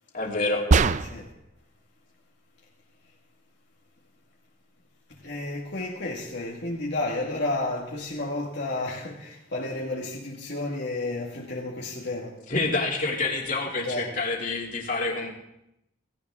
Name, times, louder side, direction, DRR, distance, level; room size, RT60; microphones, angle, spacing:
voice 1, 0.1-0.6 12.5-15.3, left 3 dB, 45° left, 2.6 m, -27 dB
sound 1, 0.7-1.4, right 4 dB, 40° right, 0.4 m, -21 dB
voice 2, 1.0-1.3 5.1-12.4 13.8-14.1, left 2 dB, 65° left, 1.8 m, -32 dB
17.0 x 16.5 x 3.6 m
head